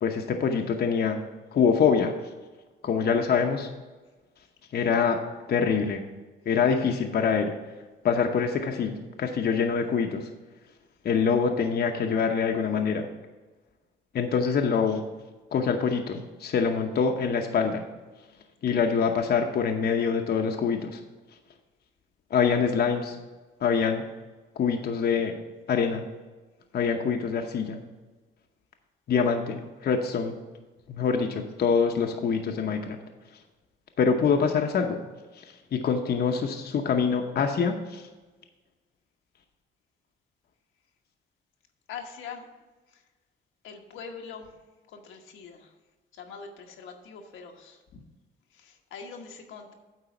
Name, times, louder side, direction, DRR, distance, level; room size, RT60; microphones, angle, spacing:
voice 1, 0.0-1.2 1.5-2.1 2.8-3.7 4.7-5.2 5.5-6.0 6.5-7.5 8.0-8.9 9.2-10.3 11.0-13.1 14.1-15.0 15.5-17.8 18.6-21.0 22.3-23.2 23.6-24.0 24.6-25.3 25.7-26.0 26.7-27.8 29.1-30.4 30.9-33.0 34.0-35.0 35.7-38.0, left 6 dB, 55° left, 4 dB, 0.8 m, -25 dB
voice 2, 41.9-42.5 43.6-44.5 44.9-45.7 46.1-47.8 48.5-49.7, left 6 dB, 85° left, 2 dB, 1.2 m, -43 dB
9.1 x 4.0 x 7.0 m, 1.3 s
cardioid pair, 90°, 20 cm